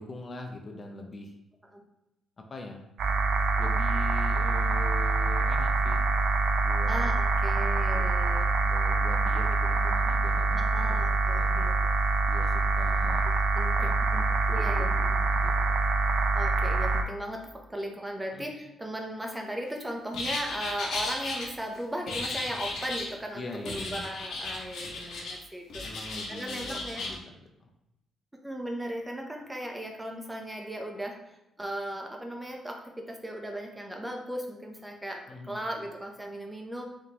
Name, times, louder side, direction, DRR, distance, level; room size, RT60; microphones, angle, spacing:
voice 1, 0.0-1.3 2.4-2.9 3.6-6.0 6.6-7.1 7.6-8.0 8.6-11.7 12.3-13.2 13.8-15.8 18.3-18.5 23.3-24.1 25.8-27.7 35.3-35.6, left 3 dB, 35° left, 3 dB, 0.6 m, -42 dB
sound 1, 3.0-17.0, right 3 dB, 65° right, 0.4 m, -25 dB
voice 2, 6.9-8.5 10.5-11.9 13.2-14.0 14.5-14.9 16.3-27.0 28.4-36.8, right 1 dB, 10° right, 2 dB, 0.7 m, -37 dB
sound 2, 20.1-21.4 22.1-23.1 23.7-25.4 25.7-27.1, left 2 dB, 70° left, 1.1 m, -35 dB
3.6 x 3.6 x 2.9 m, 0.93 s
cardioid pair, 90°, 0 cm